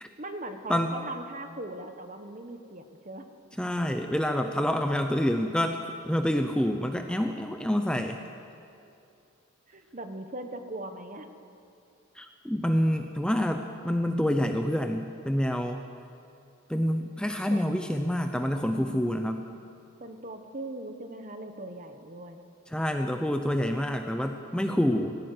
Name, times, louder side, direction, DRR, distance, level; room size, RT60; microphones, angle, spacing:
voice 1, 0.2-3.3 9.7-11.3 17.5-17.6 18.6-19.6 20.0-22.4, right 1 dB, 35° right, 7 dB, 1.3 m, -40 dB
voice 2, 3.6-5.8 6.0-8.2 12.2-15.8 16.7-19.4 22.7-25.2, equal, 5° left, 5 dB, 0.7 m, -27 dB
18.0 x 15.5 x 9.5 m, 2.6 s
head